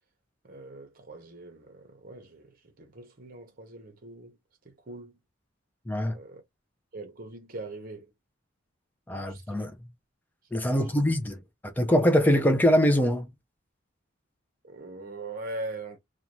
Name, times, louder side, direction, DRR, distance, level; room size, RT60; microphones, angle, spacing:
voice 1, 0.4-4.4 4.6-5.2 6.1-6.4 6.9-8.1 9.1-9.7 10.7-11.1 14.6-16.0, right 2 dB, 50° right, 0.8 m, -42 dB
voice 2, 5.9-6.2 9.1-9.9 10.5-13.3, equal, 10° left, 0.4 m, -24 dB
2.5 x 2.2 x 2.9 m
head